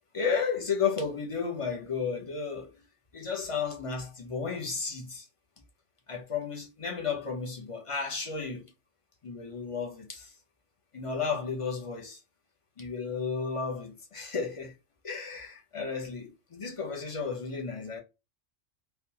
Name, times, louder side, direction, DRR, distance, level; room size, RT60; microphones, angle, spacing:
voice 1, 0.1-2.8 3.1-5.3 6.1-8.7 9.2-10.3 10.9-12.2 12.8-14.7 15.0-18.0, left 5 dB, 35° left, 0.6 m, -33 dB
3.4 x 2.2 x 2.7 m
omnidirectional pair, 1.2 m